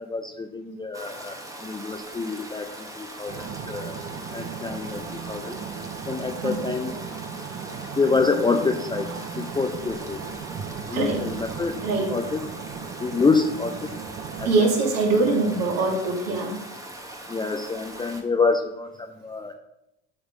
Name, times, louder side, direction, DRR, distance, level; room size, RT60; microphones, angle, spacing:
voice 1, 0.0-4.0 4.3-5.6 6.1-6.9 8.0-9.1 9.3-10.2 10.8-11.8 12.1-12.4 13.0-14.0 14.4-14.7 17.3-19.5, left 4 dB, 15° left, 6 dB, 0.5 m, -27 dB
Stream, 0.9-18.2, right 1 dB, 10° right, 1.3 m, -41 dB
sound 1, 3.3-14.5, right 7 dB, 35° right, 0.8 m, -37 dB
voice 2, 10.9-11.3 11.8-12.1 14.4-16.6, right 3 dB, 55° right, -2 dB, 2.4 m, -23 dB
8.0 x 3.4 x 5.2 m, 0.89 s
hypercardioid pair, 80°, 32 cm